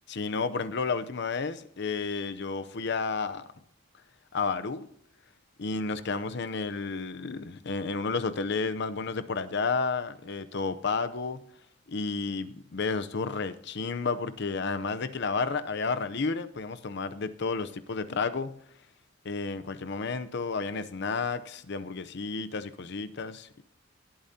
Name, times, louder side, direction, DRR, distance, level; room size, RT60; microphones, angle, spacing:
voice 1, 0.1-3.5 4.3-4.9 5.6-11.4 11.9-18.6 19.2-23.6, left 4 dB, 60° left, 0.7 m, -31 dB
18.5 x 8.7 x 2.8 m
head